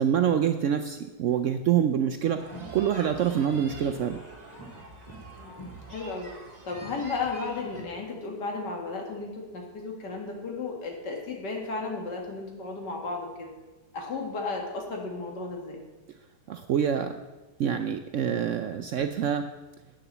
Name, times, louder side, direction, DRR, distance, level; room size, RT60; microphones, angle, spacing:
voice 1, 0.0-2.4 2.7-4.2 16.5-17.1 17.6-19.5, right 9 dB, 75° right, 8 dB, 0.7 m, -26 dB
sound 1, 2.4-7.8, right 2 dB, 25° right, 1.9 m, -44 dB
voice 2, 5.4-6.3 6.6-13.5 13.9-15.8, left 3 dB, 80° left, 1 dB, 2.4 m, -34 dB
8.9 x 6.8 x 7.2 m, 1.2 s
omnidirectional pair, 1.8 m